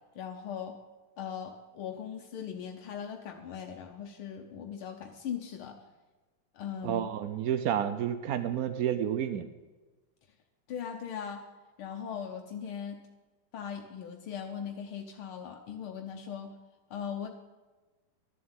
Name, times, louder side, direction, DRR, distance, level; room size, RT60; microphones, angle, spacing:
voice 1, 0.1-0.8 1.2-5.8 6.5-7.1 10.7-11.4 11.8-13.0 13.5-16.5 16.9-17.3, left 8 dB, 75° left, 3 dB, 1.8 m, -39 dB
voice 2, 6.8-9.5, right 10 dB, 80° right, 10 dB, 0.8 m, -30 dB
12.0 x 7.4 x 8.8 m, 1.2 s
omnidirectional pair, 2.3 m